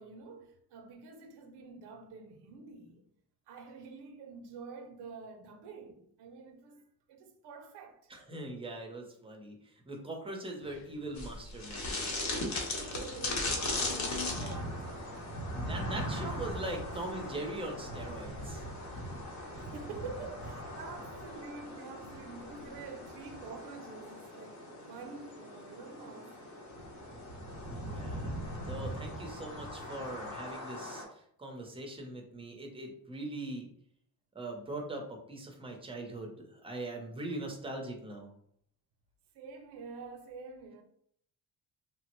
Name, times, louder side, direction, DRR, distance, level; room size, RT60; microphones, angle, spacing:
voice 1, 0.0-3.0 3.5-6.8 7.1-8.1 12.6-15.2 19.6-26.3 39.3-40.8, right 4 dB, 85° right, 0.6 m, -47 dB
voice 2, 8.1-12.2 15.6-18.7 27.9-28.3 28.7-33.7 34.3-38.3, right 2 dB, 15° right, 0.6 m, -41 dB
Subway metro underground, 10.6-18.7, left 5 dB, 80° left, 0.5 m, -52 dB
sound 1, 11.2-31.0, left 1 dB, 45° left, 0.8 m, -39 dB
3.2 x 2.0 x 3.0 m
cardioid pair, 130°, 39 cm